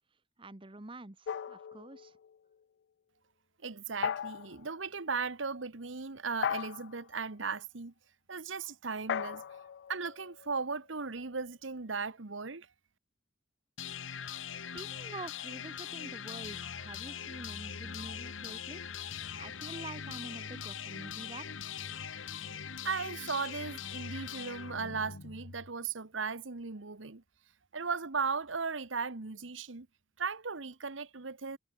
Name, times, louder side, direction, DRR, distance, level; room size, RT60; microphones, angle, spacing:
voice 1, 0.4-2.2 14.7-18.8 19.4-21.5, right 2 dB, 25° right, 1.2 m, -47 dB
sound 1, 1.3-2.4 4.0-4.6 6.4-7.1 9.1-10.8, left 8 dB, 60° left, 0.3 m, -37 dB
voice 2, 3.6-7.9 8.3-9.4 9.9-12.7 22.8-27.2 27.7-29.9 30.2-31.6, right 5 dB, 80° right, 1.3 m, -37 dB
sound 2, 13.8-25.7, left 7 dB, 90° left, 1.3 m, -42 dB
head